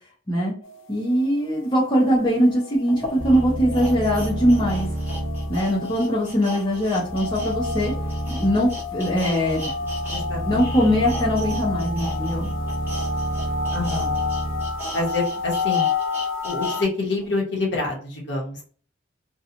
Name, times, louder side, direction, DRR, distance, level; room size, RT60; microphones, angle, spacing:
sound 1, 0.6-16.8, left 4 dB, 75° left, 0.4 m, -31 dB
voice 1, 0.9-4.9 5.5-7.9 8.3-9.7 10.4-12.5, equal, 20° left, -6 dB, 0.7 m, -21 dB
sound 2, 2.1-2.2 2.9-10.2 10.5-16.8 17.2-17.3, equal, 10° right, 0.9 m, -37 dB
sound 3, 3.2-15.7, right 1 dB, 60° right, 0.6 m, -30 dB
voice 2, 10.1-10.6 13.7-14.2 14.9-15.9 16.4-18.6, left 3 dB, 60° left, -3 dB, 1.0 m, -27 dB
2.8 x 2.2 x 2.5 m, 0.43 s
head